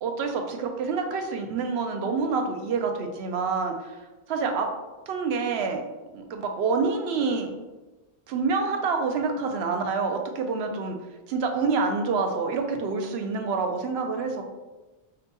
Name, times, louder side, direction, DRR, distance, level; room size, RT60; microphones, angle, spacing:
voice 1, 0.0-4.0 4.3-4.7 5.1-5.8 6.1-7.5 8.3-11.0 11.3-14.4, right 4 dB, 80° right, 4 dB, 0.8 m, -27 dB
5.1 x 2.2 x 2.8 m, 1.1 s
omnidirectional pair, 1.1 m